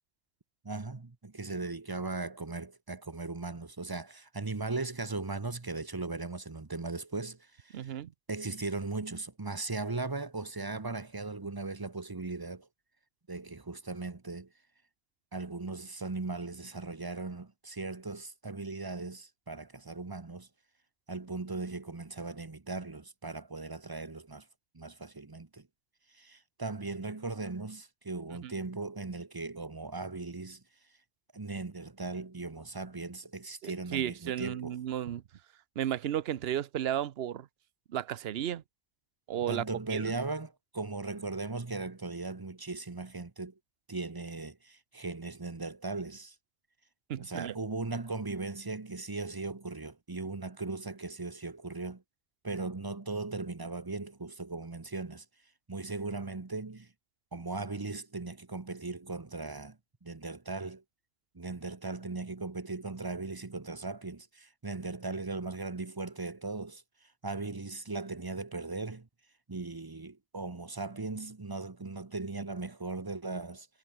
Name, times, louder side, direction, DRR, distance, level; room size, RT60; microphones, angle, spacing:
voice 1, 0.6-7.9 8.3-12.7 13.3-14.5 15.3-20.5 21.1-24.4 24.7-25.7 26.1-30.6 31.3-34.8 39.5-43.5 43.9-46.4 47.2-52.0 52.4-55.2 55.7-56.9 57.3-60.8 61.3-66.8 67.2-69.1 69.5-73.7, right 3 dB, 20° right, 0.9 m, -38 dB
voice 2, 7.7-8.1 28.4-28.5 33.6-35.2 35.8-37.5 37.9-38.6 39.3-39.6 39.9-40.1 47.1-47.5, right 10 dB, 70° right, 1.0 m, -33 dB
omnidirectional pair, 1.1 m